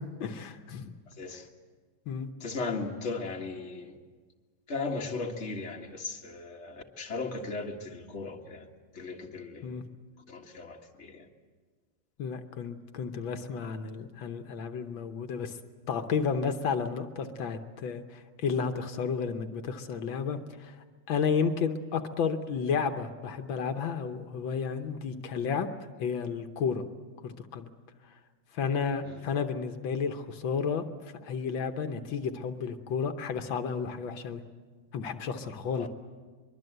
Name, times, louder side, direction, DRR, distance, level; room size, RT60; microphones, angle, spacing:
voice 1, 0.0-0.9 2.1-2.3 9.6-9.8 12.2-15.6 15.9-20.7 21.1-25.7 26.0-26.8 27.2-27.7 28.5-30.9 31.2-34.4 34.9-35.9, left 6 dB, 85° left, 7 dB, 1.8 m, -32 dB
voice 2, 1.1-1.5 2.4-3.9 4.7-8.7 8.9-9.8 10.3-11.3 29.0-29.2 35.8-35.9, left 3 dB, 35° left, 1 dB, 2.0 m, -37 dB
23.5 x 22.5 x 7.9 m, 1.5 s
omnidirectional pair, 2.1 m